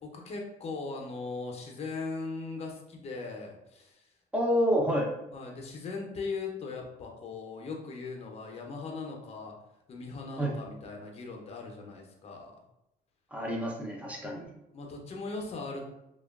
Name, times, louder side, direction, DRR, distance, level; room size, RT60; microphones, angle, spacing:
voice 1, 0.0-4.1 5.3-9.5 9.9-12.5 14.7-15.9, left 3 dB, 40° left, 1 dB, 0.6 m, -39 dB
voice 2, 4.3-5.1 10.4-10.5 13.3-14.5, equal, 10° right, -1 dB, 0.5 m, -28 dB
2.6 x 2.2 x 2.3 m, 0.87 s
cardioid pair, 110°, 17 cm